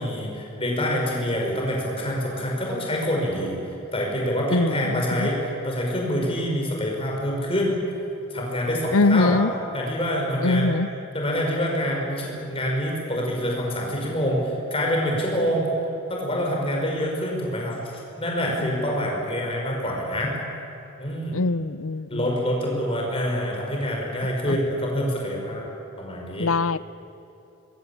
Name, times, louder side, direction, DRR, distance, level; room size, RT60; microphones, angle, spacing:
voice 1, 0.0-3.6 3.9-7.7 8.3-9.4 9.7-10.8 11.1-15.7 16.1-17.8 18.2-20.3 21.0-21.4 22.1-25.7 26.0-26.5, equal, 25° left, -1 dB, 5.9 m, -26 dB
voice 2, 4.5-5.3 8.9-9.5 10.4-10.9 18.6-18.8 21.3-22.3 24.5-24.6 26.4-26.8, left 3 dB, 65° left, 18 dB, 0.6 m, -22 dB
26.5 x 22.5 x 8.7 m, 2.9 s
head